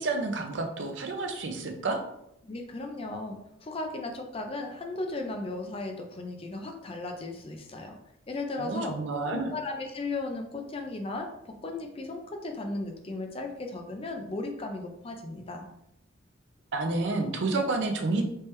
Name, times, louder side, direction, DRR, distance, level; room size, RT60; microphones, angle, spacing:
voice 1, 0.0-2.0 8.6-9.5 16.7-18.2, right 3 dB, 60° right, 5 dB, 0.5 m, -29 dB
voice 2, 2.4-8.0 8.3-9.0 9.3-15.7, left 2 dB, 30° left, 4 dB, 0.4 m, -36 dB
3.3 x 2.9 x 3.2 m, 0.80 s
head